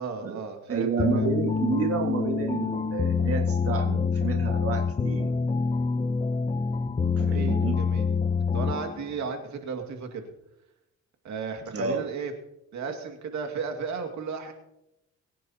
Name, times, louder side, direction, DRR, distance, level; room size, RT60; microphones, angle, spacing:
voice 1, 0.0-1.3 7.2-8.1 8.5-10.2 11.2-12.3 12.7-14.5, right 5 dB, 70° right, 4 dB, 2.2 m, -34 dB
voice 2, 0.7-5.3 7.1-7.9 11.7-12.1, right 5 dB, 50° right, 2 dB, 1.9 m, -30 dB
sound 1, 1.0-9.1, left 5 dB, 20° left, 0.6 m, -26 dB
23.0 x 10.0 x 2.9 m, 0.85 s
cardioid pair, 90°, 30 cm